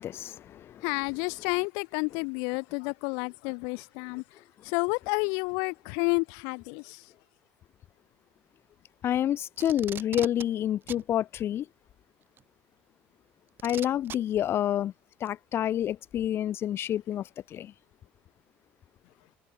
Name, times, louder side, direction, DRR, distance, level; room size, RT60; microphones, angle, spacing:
voice 1, 0.0-0.8 4.1-4.2 9.0-11.7 13.6-14.9 15.2-17.7, left 11 dB, 50° left, 0.9 m, -29 dB
voice 2, 0.8-4.2 4.6-7.0, left 37 dB, 85° left, 2.1 m, -30 dB
Packing tape duct tape, 9.6-10.5 10.9-11.0 12.4-12.5 13.6-14.2 15.3-15.4, right 9 dB, 45° right, 1.9 m, -39 dB
cardioid pair, 110°, 5 cm